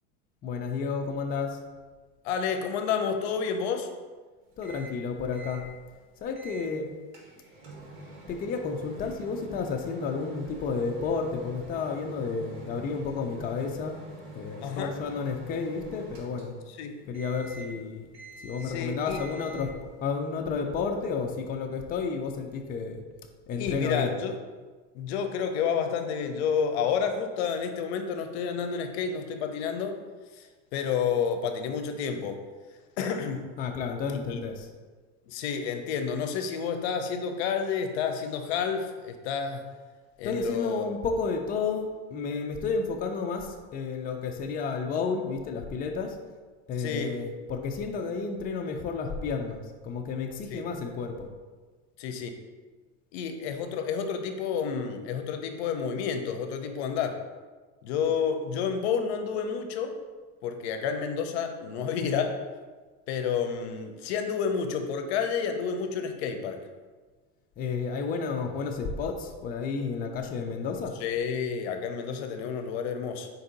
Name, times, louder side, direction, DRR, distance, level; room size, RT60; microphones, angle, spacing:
voice 1, 0.4-1.6 4.6-5.6 6.2-6.9 8.3-14.0 14.3-16.5 17.1-18.1 18.4-19.7 20.0-23.0 23.5-24.1 33.6-34.7 40.2-46.2 46.7-51.3 67.6-70.9, left 5 dB, 30° left, 4 dB, 0.4 m, -31 dB
voice 2, 2.2-3.9 14.6-14.9 16.8-17.0 18.6-19.2 23.6-24.3 24.9-30.0 30.4-30.5 30.7-32.4 33.0-33.5 34.1-34.4 35.3-39.7 40.2-40.8 46.8-47.1 50.5-50.6 52.0-52.3 53.1-57.2 57.8-60.0 60.4-62.4 63.1-66.6 71.0-73.3, left 6 dB, 80° left, 6 dB, 0.6 m, -30 dB
Microwave oven, 4.6-5.0 5.3-5.6 6.3-6.7 7.1-16.8 17.1-17.8 18.1-18.8 19.1-19.8, right 2 dB, 60° right, 1.2 m, -46 dB
4.4 x 2.7 x 3.9 m, 1.4 s
supercardioid pair, 130°, 32 cm